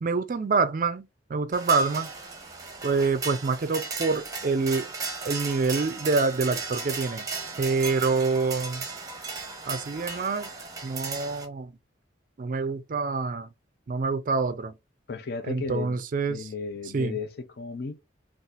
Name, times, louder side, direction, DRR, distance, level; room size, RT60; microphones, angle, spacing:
voice 1, 0.0-2.1 2.8-4.9 5.2-7.3 7.6-8.8 9.7-10.5 10.8-11.7 12.4-13.5 13.9-14.7 15.5-16.5 16.9-17.2, right 4 dB, 45° right, 0.4 m, -26 dB
metal-drops, 1.5-11.4, right 4 dB, 20° right, 0.8 m, -36 dB
voice 2, 15.1-16.0 16.3-18.0, left 5 dB, 55° left, 0.5 m, -34 dB
4.0 x 2.4 x 2.4 m
head